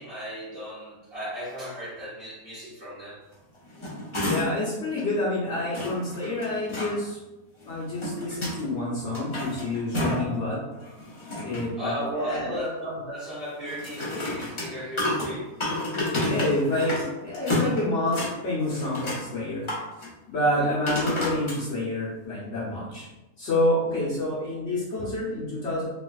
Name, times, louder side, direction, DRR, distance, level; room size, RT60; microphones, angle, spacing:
voice 1, 0.0-3.2 11.8-15.5 20.4-20.7, equal, 40° right, -9 dB, 1.3 m, -35 dB
sound 1, 3.5-4.7 5.0-5.1 5.7-6.9 7.7-8.6 9.0-10.4 10.7-11.7 13.7-17.1 17.3-18.3 18.7-19.2 19.6-20.1 20.9-21.6 22.2-22.3, left 1 dB, 30° left, 0.6 m, -30 dB
voice 2, 4.2-7.2 7.6-10.6 11.4-11.9 12.2-12.6 16.2-19.6 20.3-23.1 23.4-25.8, left 1 dB, 55° left, -7 dB, 1.1 m, -28 dB
3.3 x 3.1 x 2.3 m, 1.0 s
omnidirectional pair, 1.7 m